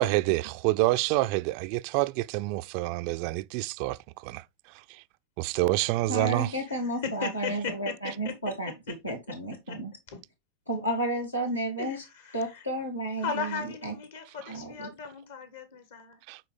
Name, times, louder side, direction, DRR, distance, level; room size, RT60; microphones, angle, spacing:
voice 1, 0.0-4.4 5.4-6.5 16.3-16.4, right 19 dB, 45° right, 0.4 m, -27 dB
voice 2, 6.1-8.7 9.0-9.9 10.7-12.0 12.3-13.9 14.5-14.9, right 1 dB, 85° left, 2.0 m, -32 dB
voice 3, 6.6-8.8 9.0-9.8 10.1-10.2 11.8-12.6 13.2-16.2, left 6 dB, 60° left, 1.6 m, -37 dB
9.9 x 3.9 x 3.3 m
figure-of-eight pair, 90°, 0 cm